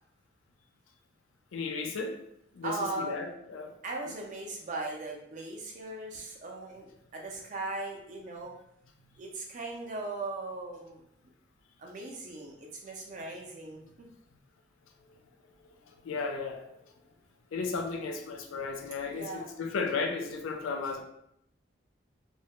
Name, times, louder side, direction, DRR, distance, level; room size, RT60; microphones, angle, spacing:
voice 1, 1.5-2.1 2.5-3.7 16.0-16.6 17.5-21.0, left 4 dB, 85° left, 4 dB, 0.4 m, -34 dB
voice 2, 2.6-3.1 3.8-8.5 9.2-11.0 11.8-13.8 19.1-19.5, right 2 dB, 40° right, 0 dB, 0.3 m, -38 dB
2.1 x 2.0 x 2.8 m, 0.77 s
head